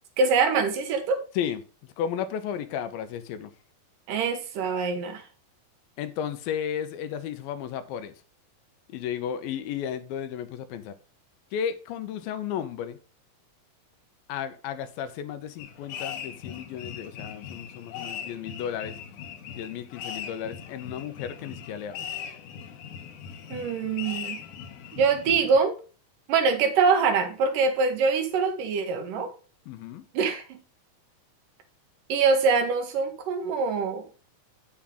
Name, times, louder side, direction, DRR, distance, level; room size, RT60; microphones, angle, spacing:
voice 1, 0.2-1.2 4.1-5.2 23.5-24.4 24.9-25.8 26.3-29.3 30.1-30.6 32.1-34.0, right 5 dB, 70° right, 2.7 m, -24 dB
voice 2, 1.4-3.5 6.0-8.2 8.9-11.0 11.5-13.0 14.3-19.0 19.5-22.0 29.7-30.1, left 9 dB, 90° left, 2.6 m, -33 dB
sound 1, 15.6-25.6, left 8 dB, 70° left, 2.2 m, -40 dB
8.7 x 7.1 x 3.8 m
omnidirectional pair, 4.1 m